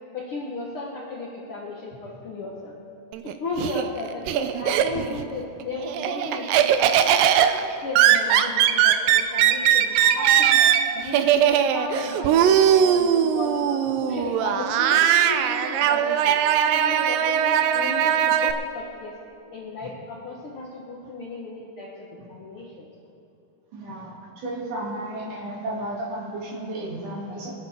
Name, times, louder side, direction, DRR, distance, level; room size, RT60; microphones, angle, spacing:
voice 1, 0.1-2.7 3.2-6.9 7.4-7.5 7.8-13.6 13.9-16.4 16.6-19.1 19.5-21.9 22.3-22.9, left 3 dB, 70° left, -3 dB, 1.3 m, -35 dB
Laughter, 3.1-5.2 5.6-18.5, right 9 dB, 85° right, 2.1 m, -20 dB
voice 2, 23.7-27.5, right 1 dB, 55° right, -5 dB, 4.0 m, -33 dB
25.0 x 9.7 x 3.6 m, 2.7 s
omnidirectional pair, 4.4 m